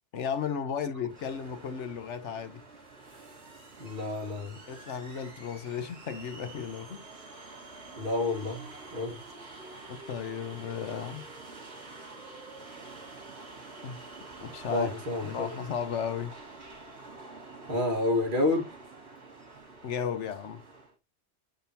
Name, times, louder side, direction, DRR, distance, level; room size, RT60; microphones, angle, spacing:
voice 1, 0.1-2.6 4.7-7.0 9.9-11.3 13.8-14.0 14.4-14.9 15.2-16.3 19.8-20.6, left 7 dB, 85° left, 1.2 m, -34 dB
sound 1, 1.1-20.9, right 3 dB, 65° right, 2.5 m, -47 dB
voice 2, 3.8-4.6 7.9-9.2 14.7-15.5 17.7-18.7, left 2 dB, 45° right, 1.8 m, -29 dB
7.5 x 5.1 x 2.7 m
omnidirectional pair, 1.2 m